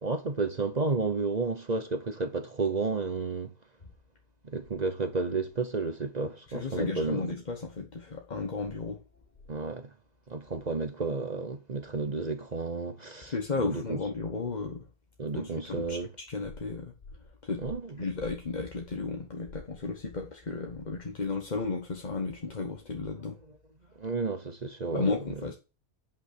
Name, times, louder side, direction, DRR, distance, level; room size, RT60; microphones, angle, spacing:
voice 1, 0.0-3.5 4.4-7.3 9.5-9.9 10.3-14.0 15.2-16.1 17.6-18.0 24.0-25.1, right 4 dB, 40° right, 0.6 m, -32 dB
voice 2, 6.5-9.0 13.3-14.9 15.3-16.9 17.4-17.6 18.0-23.4 24.9-25.5, left 4 dB, 30° left, 1.1 m, -34 dB
9.4 x 5.7 x 6.6 m
omnidirectional pair, 1.7 m